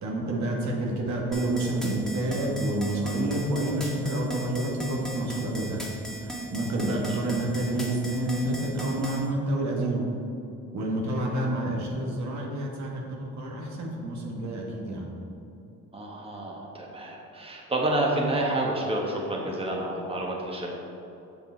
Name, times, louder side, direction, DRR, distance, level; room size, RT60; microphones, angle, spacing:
voice 1, 0.0-5.8 6.1-10.1 10.7-15.1, right 1 dB, 65° right, -1 dB, 1.6 m, -29 dB
sound 1, 1.3-9.2, right 1 dB, ahead, 1.5 m, -37 dB
voice 2, 6.8-7.3 15.9-20.7, right 1 dB, 20° right, -2 dB, 1.4 m, -29 dB
6.9 x 6.9 x 4.5 m, 2.8 s
cardioid pair, 90°, 30 cm